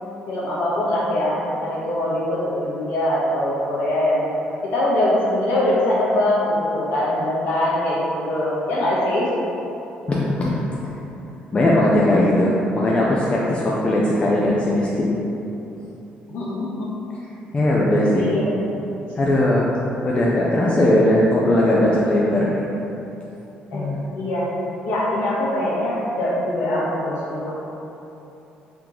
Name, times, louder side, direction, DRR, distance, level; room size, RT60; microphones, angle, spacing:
voice 1, 0.3-4.3 4.6-9.3 16.3-16.9 18.1-18.5 23.7-23.8 24.1-24.5 24.8-27.5, left 1 dB, 75° left, -8 dB, 1.2 m, -22 dB
voice 2, 10.1-10.9 11.5-15.2 17.5-18.3 19.2-19.8 20.0-22.6 23.7-24.0, left 1 dB, 30° left, -5 dB, 0.5 m, -19 dB
3.5 x 3.0 x 3.7 m, 3.0 s
supercardioid pair, 80°, 4 cm